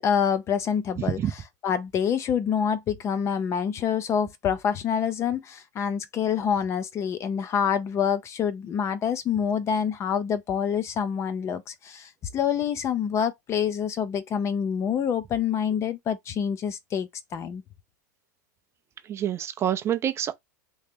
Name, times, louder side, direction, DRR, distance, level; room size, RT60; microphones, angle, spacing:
voice 1, 0.0-17.6, left 8 dB, 30° left, 0.6 m, -27 dB
voice 2, 19.1-20.3, right 10 dB, 25° right, 0.5 m, -27 dB
3.0 x 2.8 x 3.5 m
supercardioid pair, 125°, 10 cm